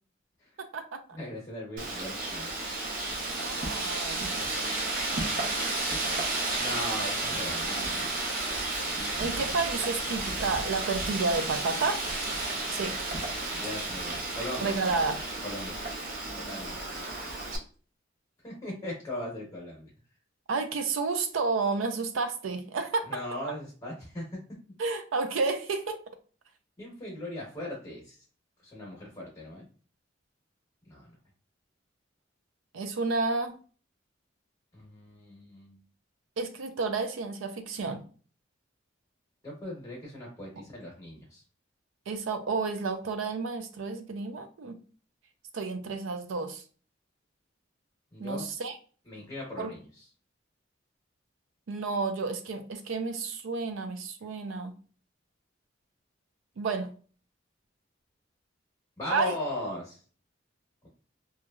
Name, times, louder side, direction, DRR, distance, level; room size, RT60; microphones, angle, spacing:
voice 1, 0.6-1.0 3.3-4.3 9.2-12.0 12.7-13.0 14.6-15.2 20.5-23.1 24.8-26.0 32.7-33.5 36.4-38.0 42.1-44.8 45.5-46.6 48.2-48.8 49.6-49.7 51.7-54.7 56.6-56.9 59.1-59.3, right 4 dB, 90° right, 7 dB, 0.4 m, -31 dB
voice 2, 1.1-2.5 6.6-8.1 13.5-14.9 15.4-15.8 16.3-16.8 18.4-19.9 23.0-24.2 26.8-28.2 28.6-29.7 30.9-31.1 34.7-35.8 39.4-41.4 48.1-48.5 49.1-50.0 59.0-60.0, left 1 dB, 20° left, -3 dB, 0.9 m, -38 dB
Wind, 1.8-17.6, right 2 dB, 45° right, 0.6 m, -32 dB
2.9 x 2.3 x 2.2 m, 0.40 s
head